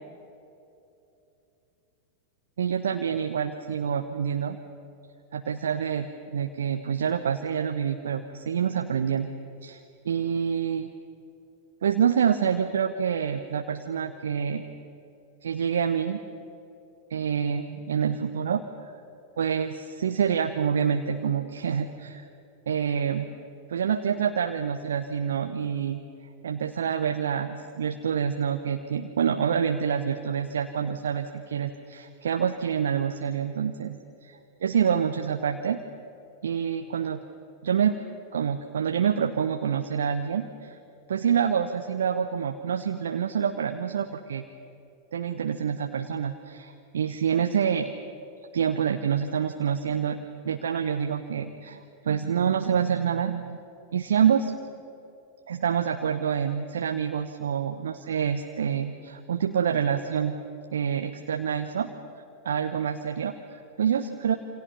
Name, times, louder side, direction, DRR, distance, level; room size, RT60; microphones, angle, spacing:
voice 1, 2.6-4.6 5.3-9.3 9.6-9.8 10.0-10.9 11.8-14.6 15.4-16.2 17.1-18.6 19.4-22.3 22.7-23.3 23.7-26.0 26.4-33.9 34.2-35.8 36.4-37.2 37.6-37.9 38.3-40.8 41.1-44.4 45.1-47.9 48.5-50.2 50.4-53.6 53.9-54.5 55.5-60.4 60.7-61.9 62.4-64.4, right 7 dB, 65° right, 6 dB, 1.1 m, -27 dB
28.5 x 26.5 x 5.7 m, 2.9 s
figure-of-eight pair, 90°, 0 cm